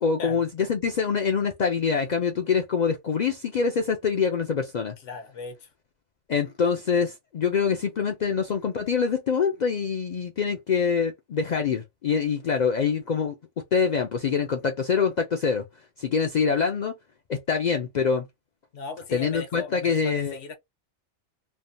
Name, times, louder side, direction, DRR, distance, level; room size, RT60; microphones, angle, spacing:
voice 1, 0.0-4.9 6.3-13.4 13.7-15.7 16.0-16.9 17.3-18.3 19.1-20.4, left 6 dB, 60° left, 0.4 m, -25 dB
voice 2, 5.0-5.7 12.5-12.6 18.7-20.5, left 4 dB, 80° left, 1.1 m, -38 dB
3.3 x 2.0 x 2.5 m
omnidirectional pair, 1.2 m